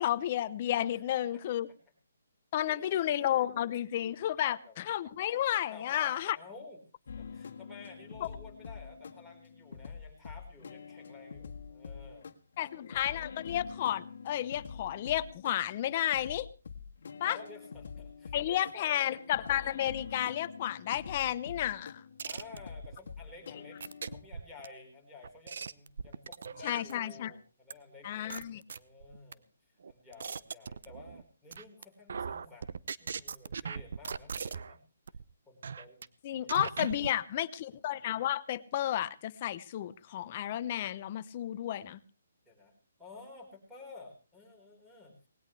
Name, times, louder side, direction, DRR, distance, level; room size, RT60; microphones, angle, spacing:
voice 1, 0.0-1.7 2.5-6.4 12.6-16.5 17.2-17.4 18.3-22.0 26.6-27.3 28.0-28.6 36.2-42.0, left 12 dB, 35° left, 14 dB, 0.8 m, -32 dB
voice 2, 2.5-3.1 3.4-3.5 4.4-4.7 5.7-6.8 7.2-12.3 12.8-13.0 17.2-19.1 22.2-28.4 28.7-29.4 29.9-32.7 33.0-34.8 35.4-36.1 36.3-36.6 42.4-42.7 43.0-45.2, left 3 dB, ahead, -5 dB, 4.7 m, -52 dB
sound 1, 7.1-24.2, left 6 dB, 60° left, 1.7 m, -46 dB
sound 2, 22.2-23.0 23.8-24.7 25.2-27.0 27.7-27.8 28.3-29.3 29.8-31.2 31.5-31.8 32.1-34.8 35.1-35.2 35.6-36.1 36.5-37.1, right 6 dB, 65° right, 0.7 m, -39 dB
19.5 x 17.0 x 3.3 m, 0.34 s
hypercardioid pair, 165°, 0 cm